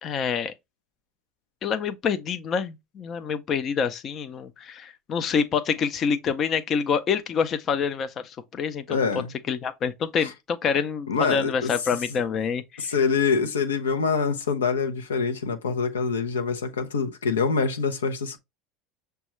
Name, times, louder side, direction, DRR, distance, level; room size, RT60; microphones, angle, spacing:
voice 1, 0.0-0.5 1.6-9.0 9.5-12.9, left 6 dB, 40° left, 0.5 m, -27 dB
voice 2, 8.9-9.3 10.2-10.3 11.1-11.7 12.1-12.2 12.8-18.4, left 5 dB, 90° left, 0.6 m, -25 dB
6.1 x 2.3 x 3.0 m
hypercardioid pair, 85°, 0 cm